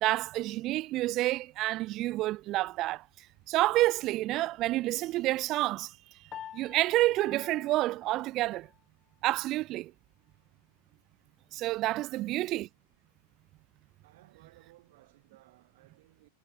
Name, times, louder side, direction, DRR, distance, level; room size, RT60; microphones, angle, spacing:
voice 1, 0.0-3.0 3.5-6.0 6.5-8.7 9.2-9.9 11.5-12.7, right 17 dB, 35° right, 0.4 m, -29 dB
Piano, 6.3-8.8, left 10 dB, 30° left, 2.8 m, -48 dB
voice 2, 12.0-12.3 13.6-13.7 14.0-16.3, right 18 dB, 55° right, 4.8 m, -60 dB
figure-of-eight pair, 90°, 0 cm